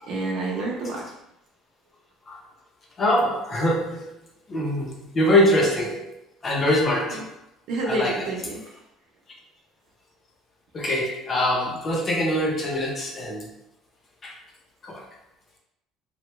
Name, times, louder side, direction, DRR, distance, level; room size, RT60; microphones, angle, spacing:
voice 1, 0.1-1.0 7.7-8.6, right 2 dB, 65° right, -2 dB, 0.9 m, -28 dB
voice 2, 3.0-4.1 4.5-6.1 6.4-7.3 7.9-8.3 10.7-13.5 14.2-14.4 14.8-15.0, left 1 dB, 30° left, -1 dB, 0.7 m, -23 dB
3.2 x 2.3 x 3.2 m, 0.82 s
cardioid pair, 140°, 0 cm